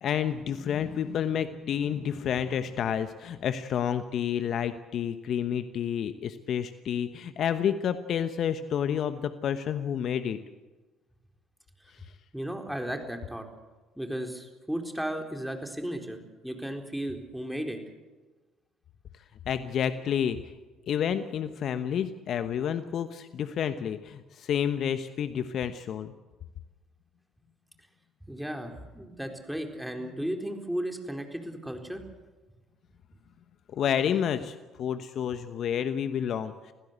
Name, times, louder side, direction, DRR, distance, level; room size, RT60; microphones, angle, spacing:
voice 1, 0.0-10.4 19.5-20.4 20.9-26.1 33.7-36.7, left 8 dB, 55° left, 11 dB, 1.1 m, -29 dB
voice 2, 12.3-13.4 14.0-16.2 16.4-17.8 28.3-32.0, right 1 dB, 5° right, 4 dB, 4.2 m, -35 dB
25.5 x 16.0 x 8.2 m, 1.2 s
hypercardioid pair, 60°, 0 cm